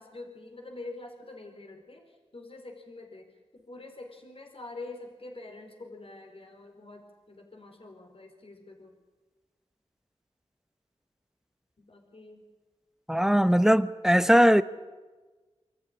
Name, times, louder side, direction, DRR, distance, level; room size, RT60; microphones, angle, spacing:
voice 1, 0.0-9.0 11.8-12.4 13.1-13.7, left 2 dB, 55° left, 4.3 m, -46 dB
voice 2, 13.1-14.6, equal, 5° right, 0.9 m, -20 dB
25.5 x 14.0 x 9.9 m
wide cardioid pair, 65°, 12 cm